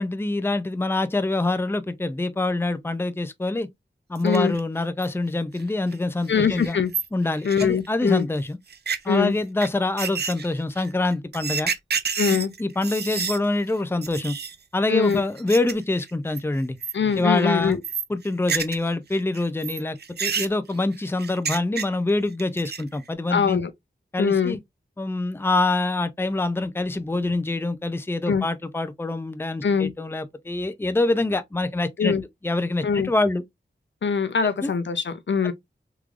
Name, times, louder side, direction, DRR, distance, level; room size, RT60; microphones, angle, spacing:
voice 1, 0.0-3.7 4.1-6.8 7.1-8.6 9.0-11.7 12.3-14.3 14.7-16.8 17.2-17.8 18.1-23.6 24.1-24.6 25.0-32.1 32.4-33.4 34.6-34.7, left 2 dB, 10° left, 0.5 m, -25 dB
voice 2, 4.2-4.5 6.3-6.9 7.4-8.3 9.1-9.4 12.2-12.5 14.9-15.2 16.9-17.8 23.3-23.7 24.2-24.6 28.3-28.4 29.6-29.9 32.0-32.2 32.8-33.1 34.0-35.5, left 6 dB, 70° left, 0.6 m, -22 dB
sound 1, 4.2-4.6 5.0-5.1 5.6-5.7 5.9-6.0 6.3-6.4 6.6-8.2 8.7-9.0 9.6-9.7 10.0-13.4 13.7-13.8 14.0-14.6 15.1-15.7 16.0-16.4 16.8-17.2 17.5-18.9 19.1-22.1 22.4-23.0, right 6 dB, 60° right, 0.5 m, -29 dB
3.7 x 3.2 x 2.4 m
wide cardioid pair, 65°, 19 cm